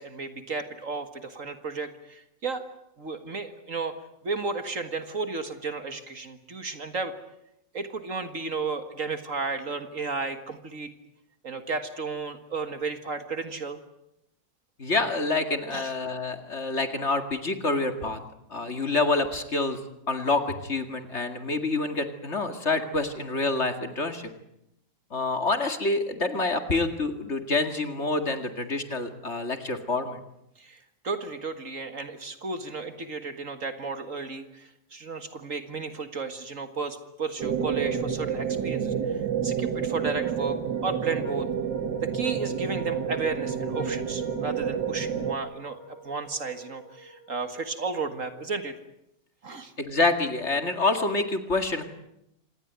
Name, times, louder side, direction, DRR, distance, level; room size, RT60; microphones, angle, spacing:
voice 1, 0.0-2.6 3.0-3.9 4.2-7.1 7.7-10.9 11.4-13.8 15.7-15.9 30.6-41.5 42.0-48.8 49.4-49.7, right 4 dB, 45° right, 9 dB, 2.0 m, -33 dB
voice 2, 14.8-18.2 18.5-19.8 20.1-24.3 25.1-30.2 49.8-51.8, left 3 dB, 40° left, 8 dB, 2.3 m, -27 dB
sound 1, 37.4-45.4, right 7 dB, 75° right, 2.1 m, -29 dB
sound 2, 40.2-47.8, left 2 dB, 85° left, 7.1 m, -47 dB
26.5 x 19.0 x 9.4 m, 0.82 s
omnidirectional pair, 1.9 m